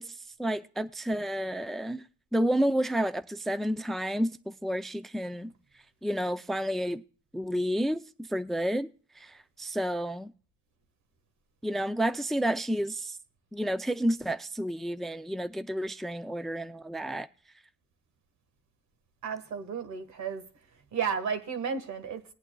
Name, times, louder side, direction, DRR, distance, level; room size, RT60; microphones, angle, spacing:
voice 1, 0.0-2.0 2.3-5.5 6.0-7.0 7.3-8.9 9.2-10.3 11.6-13.2 13.5-17.3, equal, ahead, 0.5 m, -30 dB
voice 2, 19.2-20.5 20.9-22.3, right 6 dB, 70° right, 1.6 m, -33 dB
19.5 x 8.8 x 2.3 m
cardioid pair, 90°, 30 cm